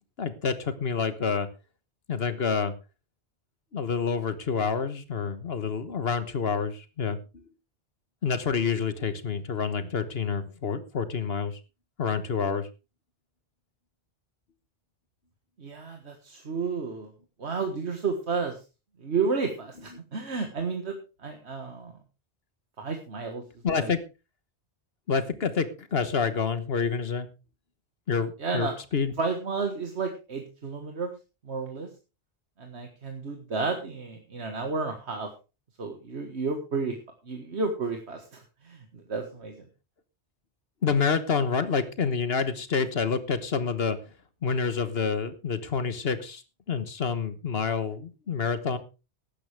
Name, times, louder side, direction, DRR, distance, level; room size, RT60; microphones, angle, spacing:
voice 1, 0.2-1.5 2.1-2.7 3.7-7.4 8.2-11.6 12.0-12.7 23.6-24.0 25.1-27.3 28.1-29.1 40.8-44.0 44.4-46.4 46.7-48.8, left 5 dB, 65° left, 11 dB, 1.4 m, -28 dB
voice 2, 15.6-17.1 17.4-18.6 19.0-22.0 22.8-23.4 23.7-23.9 28.4-28.8 29.2-31.1 31.4-31.9 32.6-35.3 35.8-37.0 37.2-39.6, right 4 dB, 80° right, 4 dB, 1.9 m, -32 dB
15.5 x 12.0 x 3.4 m, 0.30 s
omnidirectional pair, 1.1 m